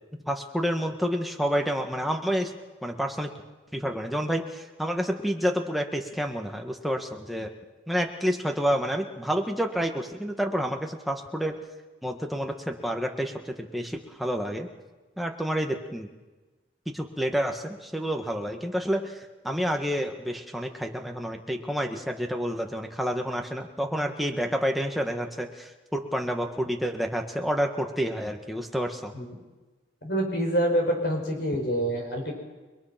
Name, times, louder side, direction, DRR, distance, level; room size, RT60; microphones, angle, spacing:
voice 1, 0.3-2.5 2.8-3.3 3.7-7.5 7.9-11.6 12.0-14.7 15.2-16.1 16.8-29.1, equal, ahead, 2 dB, 1.8 m, -29 dB
voice 2, 30.0-32.3, equal, 60° left, 2 dB, 6.4 m, -26 dB
30.0 x 22.0 x 6.0 m, 1.2 s
head